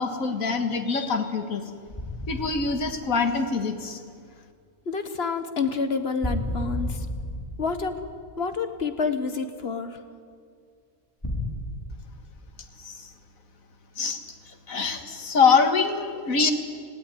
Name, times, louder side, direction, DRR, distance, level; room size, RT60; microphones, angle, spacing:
voice 1, 0.0-1.6 2.3-4.0 12.8-13.1 14.0-14.2 14.5-16.5, left 5 dB, 80° left, 6 dB, 2.1 m, -24 dB
sound 1, 1.9-3.7 6.2-8.7 11.2-11.4, left 1 dB, 15° left, 4.2 m, -32 dB
voice 2, 4.9-7.1 7.6-8.1 8.4-10.0, left 4 dB, 50° left, 9 dB, 1.5 m, -28 dB
18.5 x 17.5 x 9.8 m, 2.1 s
omnidirectional pair, 1.4 m